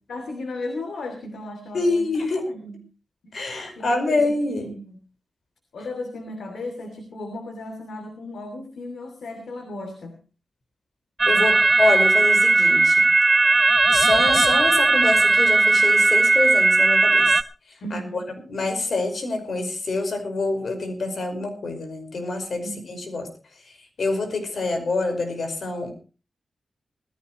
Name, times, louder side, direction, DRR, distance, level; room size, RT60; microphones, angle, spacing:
voice 1, 0.1-2.8 3.2-5.0 5.7-10.2 17.8-18.3 22.6-23.1, left 2 dB, 85° left, 6 dB, 2.9 m, -36 dB
voice 2, 1.7-2.5 3.3-4.7 11.3-13.1 13.9-17.4 17.9-18.2 18.5-23.3 23.6-25.9, left 3 dB, 65° left, 6 dB, 5.2 m, -26 dB
sound 1, 11.2-17.4, right 3 dB, 30° right, 0.8 m, -17 dB
20.0 x 14.5 x 3.1 m, 0.35 s
wide cardioid pair, 95°, 0 cm